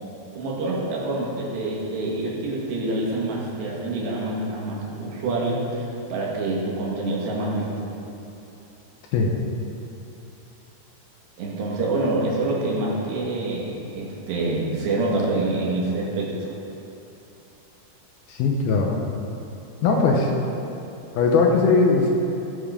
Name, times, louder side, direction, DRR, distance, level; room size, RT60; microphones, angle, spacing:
voice 1, 0.4-7.9 11.4-16.5, right 2 dB, 75° right, -4 dB, 4.0 m, -26 dB
voice 2, 18.3-19.0 19.8-20.3 21.2-22.1, left 4 dB, 75° left, 0 dB, 2.6 m, -19 dB
17.0 x 6.9 x 5.1 m, 3.0 s
omnidirectional pair, 4.9 m